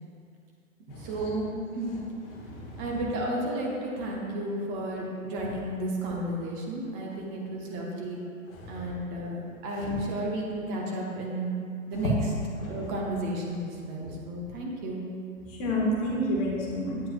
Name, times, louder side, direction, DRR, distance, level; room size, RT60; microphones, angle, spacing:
voice 1, 1.0-2.0 2.8-8.2 8.7-12.3 12.7-15.0, right 1 dB, 20° right, -2 dB, 0.7 m, -32 dB
voice 2, 2.4-2.8 8.5-8.8 9.8-10.0 12.6-12.8 15.6-17.0, equal, 25° left, -3 dB, 1.2 m, -30 dB
8.3 x 7.5 x 2.4 m, 2.4 s
figure-of-eight pair, 125°, 42 cm